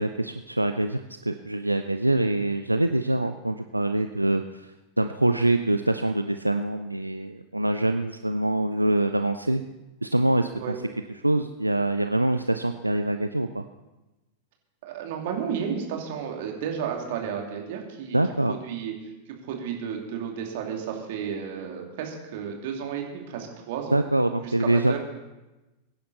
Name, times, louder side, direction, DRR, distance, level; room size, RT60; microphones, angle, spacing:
voice 1, 0.0-4.7 5.0-9.6 10.0-10.7 11.2-13.6 18.1-18.6 23.9-25.0, right 1 dB, 85° right, 8 dB, 0.5 m, -24 dB
voice 2, 14.8-18.2 18.5-18.9 19.5-24.0 24.4-25.0, right 7 dB, 50° right, 1 dB, 2.6 m, -32 dB
23.0 x 10.0 x 4.1 m, 1.1 s
figure-of-eight pair, 90°, 0 cm